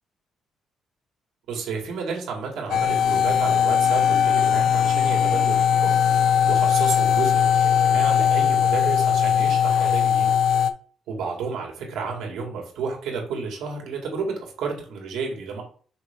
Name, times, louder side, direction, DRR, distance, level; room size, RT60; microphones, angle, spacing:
voice 1, 1.5-5.9 6.5-10.3 11.1-15.6, right 5 dB, 85° right, 0 dB, 2.2 m, -31 dB
sound 1, 2.7-10.7, left 8 dB, 75° left, 0.6 m, -20 dB
5.9 x 4.2 x 3.8 m, 0.43 s
cardioid pair, 90°, 0 cm